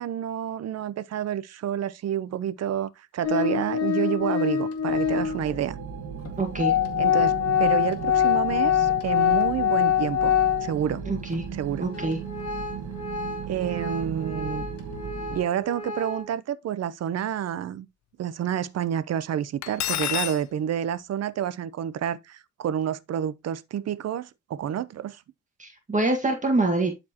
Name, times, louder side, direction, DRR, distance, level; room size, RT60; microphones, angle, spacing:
voice 1, 0.0-5.8 7.0-10.3 10.6-11.0 11.5-11.9 13.5-14.7 15.3-17.9 18.2-25.2, right 9 dB, 55° right, 0.7 m, -29 dB
Organ, 3.2-5.5 6.2-6.3 6.6-10.9 11.3-11.4 11.9-16.3, left 9 dB, 55° left, 2.0 m, -25 dB
sound 1, 4.9-15.4, right 6 dB, 75° right, 1.4 m, -37 dB
voice 2, 6.4-6.7 11.1-11.4 11.8-12.2 25.6-26.9, right 2 dB, 25° right, 1.8 m, -25 dB
Cutlery silverware, 19.6-20.4, left 12 dB, 70° left, 0.6 m, -28 dB
11.5 x 4.4 x 2.9 m
cardioid pair, 90°, 30 cm